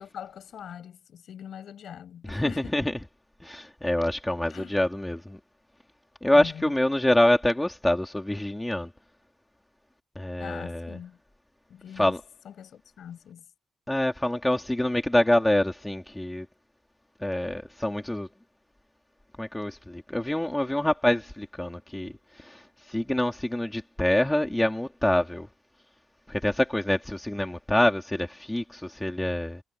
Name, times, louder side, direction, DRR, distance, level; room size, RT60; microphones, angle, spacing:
voice 1, 0.0-2.9 4.5-4.8 6.3-6.7 10.4-11.2 11.7-12.1 12.4-13.4, left 9 dB, 65° left, 7.8 m, -42 dB
voice 2, 2.3-2.9 3.4-5.4 6.2-8.9 10.1-11.0 12.0-12.2 13.9-16.5 17.2-18.3 19.4-25.5 26.3-29.6, left 1 dB, 10° left, 3.2 m, -26 dB
cardioid pair, 90°, 0 cm